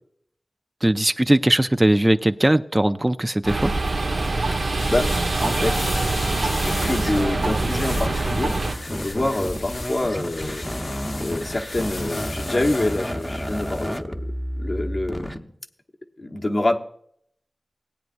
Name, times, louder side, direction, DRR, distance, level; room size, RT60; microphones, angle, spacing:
voice 1, 0.8-3.7, right 1 dB, 25° right, 9 dB, 0.5 m, -19 dB
sound 1, 3.4-8.7, right 2 dB, 80° right, 1.2 m, -24 dB
sound 2, 4.5-14.0, left 3 dB, 80° left, 0.7 m, -37 dB
voice 2, 4.6-5.9 6.4-10.7 11.2-14.2 14.6-15.5 16.2-16.8, left 1 dB, 55° left, 2 dB, 1.1 m, -27 dB
sound 3, 6.7-15.4, equal, 10° left, 0.8 m, -31 dB
18.5 x 9.3 x 2.6 m, 0.66 s
cardioid pair, 45°, 0 cm